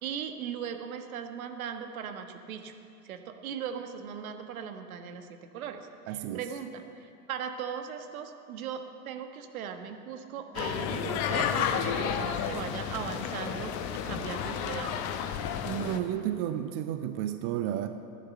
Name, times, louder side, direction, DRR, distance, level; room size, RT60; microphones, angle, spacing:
voice 1, 0.0-2.7 3.0-5.3 5.5-15.0, right 7 dB, 60° right, 6 dB, 1.3 m, -38 dB
voice 2, 6.1-6.4 15.7-17.9, right 11 dB, 30° right, 8 dB, 0.6 m, -32 dB
sound 1, 10.5-16.0, left 8 dB, 35° left, 1.0 m, -31 dB
14.5 x 10.0 x 6.6 m, 2.6 s
figure-of-eight pair, 90°, 48 cm